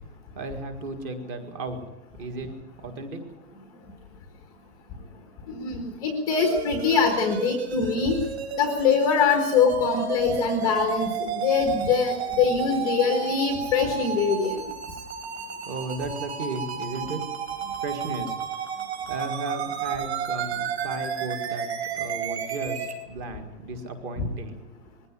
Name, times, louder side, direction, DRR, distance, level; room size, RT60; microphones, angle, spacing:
voice 1, 0.3-1.8 2.2-3.2 15.7-17.2 17.8-18.4 19.1-21.7 21.9-24.6, right 2 dB, 15° right, 7 dB, 1.8 m, -34 dB
voice 2, 5.5-8.2 8.6-14.6, left 5 dB, 10° left, 4 dB, 1.3 m, -23 dB
sound 1, 6.3-22.9, right 7 dB, 45° right, 4.6 m, -32 dB
21.0 x 16.5 x 9.8 m, 0.92 s
hypercardioid pair, 180°, 44 cm